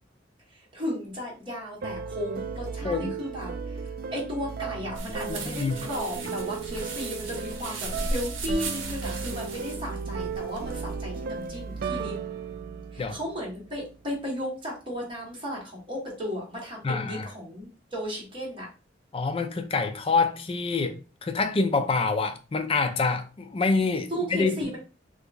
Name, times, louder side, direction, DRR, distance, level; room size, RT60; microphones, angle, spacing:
voice 1, 0.7-3.5 4.1-12.2 12.9-18.7 24.1-24.8, equal, 30° right, 1.5 m, -34 dB
sound 1, 1.8-13.9, right 5 dB, 50° right, 0.3 m, -35 dB
voice 2, 2.8-3.1 5.3-5.8 13.0-13.2 16.8-17.3 19.1-24.7, left 4 dB, 30° left, 0.4 m, -26 dB
sound 2, 4.9-11.8, right 2 dB, 80° right, 0.7 m, -36 dB
2.8 x 2.6 x 3.4 m
head